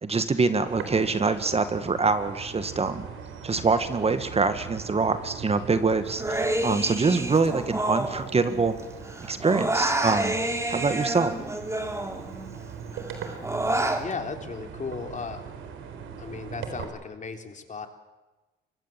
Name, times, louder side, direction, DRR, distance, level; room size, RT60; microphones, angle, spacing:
voice 1, 0.0-3.1 3.4-8.8 9.3-10.4 10.7-11.3, right 4 dB, 30° right, 10 dB, 1.8 m, -25 dB
sound 1, 0.7-16.8, right 6 dB, 90° right, 4.0 m, -40 dB
Human voice, 6.2-8.8 9.1-12.6 12.9-14.0, right 1 dB, 15° right, 3.3 m, -29 dB
voice 2, 14.0-15.4 16.2-17.9, left 4 dB, 40° left, 6 dB, 3.5 m, -35 dB
24.5 x 21.5 x 7.6 m, 1.1 s
cardioid pair, 90°, 20 cm